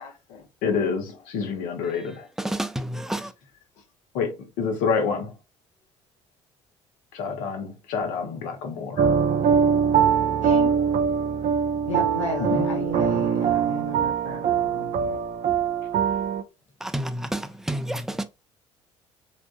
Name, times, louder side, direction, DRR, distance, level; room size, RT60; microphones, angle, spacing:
voice 1, 0.0-2.3 4.1-5.3 7.1-9.1 12.4-12.6, left 5 dB, 65° left, 1.1 m, -28 dB
voice 2, 1.9-3.3 16.8-18.2, right 1 dB, 5° right, 0.5 m, -30 dB
sound 1, 9.0-16.4, right 7 dB, 50° right, 0.6 m, -22 dB
voice 3, 10.4-10.7 11.9-15.2, left 3 dB, 85° left, 0.6 m, -34 dB
3.5 x 2.6 x 2.5 m
figure-of-eight pair, 55°, 16 cm